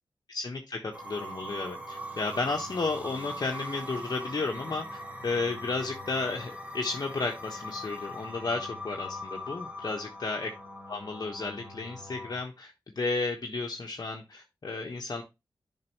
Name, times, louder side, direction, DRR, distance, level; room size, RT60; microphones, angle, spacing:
voice 1, 0.3-0.8 1.0-10.5 10.9-15.2, left 3 dB, 55° left, 0 dB, 1.2 m, -33 dB
sound 1, 0.9-12.4, left 1 dB, 20° right, 1.7 m, -41 dB
7.6 x 5.2 x 3.1 m, 0.23 s
cardioid pair, 40°, 8 cm